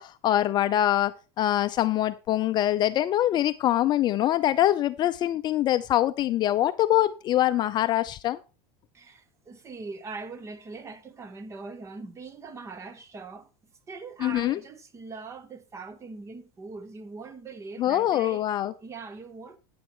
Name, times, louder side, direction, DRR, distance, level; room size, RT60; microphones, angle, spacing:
voice 1, 0.0-8.4 14.2-14.6 17.8-18.7, left 13 dB, 35° left, 0.4 m, -24 dB
voice 2, 8.9-13.5 13.9-18.5 18.8-19.6, right 4 dB, 20° right, 1.2 m, -41 dB
9.4 x 8.0 x 4.4 m
supercardioid pair, 140°, 13 cm